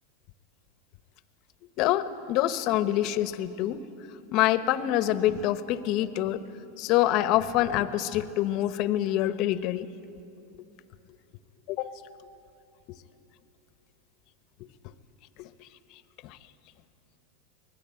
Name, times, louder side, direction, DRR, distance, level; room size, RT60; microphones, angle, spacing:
voice 1, 1.8-3.8 4.3-6.4 6.8-9.9 11.7-11.9 15.4-15.5 16.2-16.4, left 13 dB, 50° left, 13 dB, 1.0 m, -26 dB
24.0 x 19.0 x 9.1 m, 2.8 s
hypercardioid pair, 105°, 0 cm